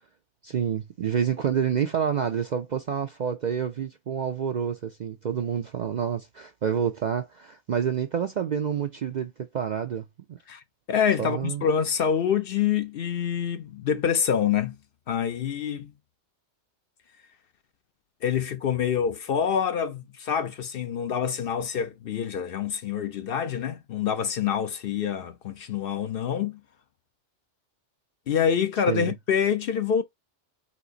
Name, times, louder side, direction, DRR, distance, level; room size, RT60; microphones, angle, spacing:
voice 1, 0.4-10.4 11.2-11.6 28.9-29.1, right 8 dB, 60° right, 0.5 m, -28 dB
voice 2, 10.9-14.8 15.1-15.9 18.2-26.6 28.3-30.0, left 8 dB, 60° left, 0.7 m, -26 dB
4.4 x 2.4 x 3.9 m
omnidirectional pair, 1.2 m